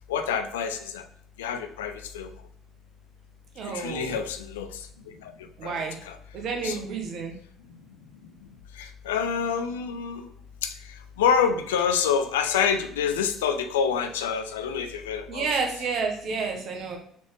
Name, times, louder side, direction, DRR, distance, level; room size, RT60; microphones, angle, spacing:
voice 1, 0.1-1.0 1.4-2.3 3.7-4.7 5.6-5.7 6.1-6.2 6.6-6.8 8.8-10.2 10.6-10.7 11.2-15.5, left 7 dB, 80° left, 8 dB, 0.4 m, -27 dB
voice 2, 3.5-4.2 5.6-6.0 6.3-7.3 15.3-17.0, right 4 dB, 55° right, 2 dB, 1.0 m, -30 dB
4.1 x 3.4 x 3.2 m, 0.67 s
hypercardioid pair, 55°, 0 cm